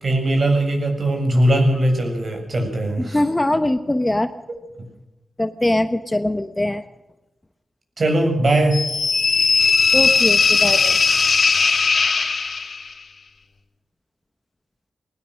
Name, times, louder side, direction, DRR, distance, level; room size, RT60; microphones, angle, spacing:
voice 1, 0.0-3.2 8.0-8.8, right 1 dB, 50° right, 3 dB, 7.4 m, -19 dB
voice 2, 3.0-4.3 5.4-6.8 9.9-11.0, left 1 dB, 15° left, 10 dB, 1.1 m, -22 dB
sound 1, 8.7-12.9, left 4 dB, 60° left, 2.9 m, -18 dB
21.0 x 19.0 x 6.4 m, 0.99 s
cardioid pair, 80°, 0 cm